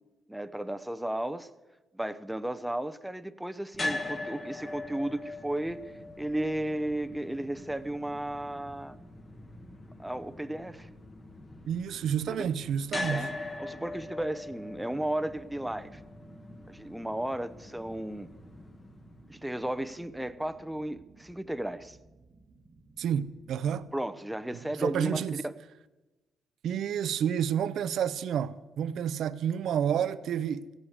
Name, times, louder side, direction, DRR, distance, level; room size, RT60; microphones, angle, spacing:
voice 1, 0.3-1.5 1.9-5.8 6.2-9.0 10.0-10.9 12.3-12.5 13.1-13.3 13.6-16.0 16.7-18.3 19.3-22.0 23.9-25.5, right 1 dB, 5° right, 0.8 m, -34 dB
sound 1, 3.7-19.9, left 2 dB, 25° left, 1.4 m, -41 dB
sound 2, 5.5-23.9, right 3 dB, 35° right, 1.2 m, -57 dB
voice 2, 11.7-13.3 23.0-23.9 24.8-25.4 26.6-30.7, right 9 dB, 70° right, 0.6 m, -30 dB
15.5 x 8.8 x 8.1 m
cardioid pair, 90°, 0 cm